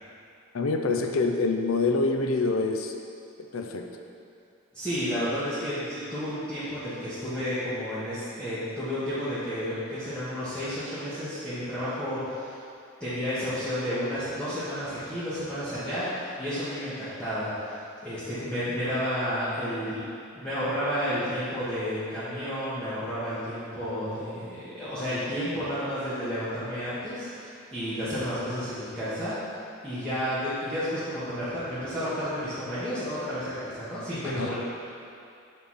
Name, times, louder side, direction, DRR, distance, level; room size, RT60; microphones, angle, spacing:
voice 1, 0.5-2.9 3.5-3.9 34.4-34.6, left 3 dB, 80° left, 4 dB, 0.6 m, -26 dB
voice 2, 4.7-12.6 13.0-20.0 20.3-29.4 29.8-34.6, equal, 5° left, -16 dB, 1.5 m, -31 dB
6.4 x 5.5 x 4.2 m, 2.5 s
head